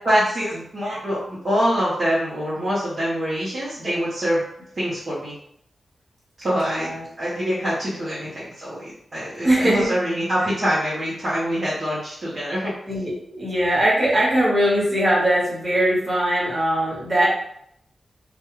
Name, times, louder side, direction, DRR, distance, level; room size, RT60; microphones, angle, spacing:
voice 1, 0.0-4.4 4.8-5.3 6.4-12.7, equal, 40° right, -9 dB, 0.8 m, -25 dB
voice 2, 6.6-7.0 9.4-9.9 12.9-17.3, right 1 dB, 20° right, -6 dB, 1.2 m, -21 dB
2.3 x 2.2 x 3.0 m, 0.72 s
wide cardioid pair, 110°, 0 cm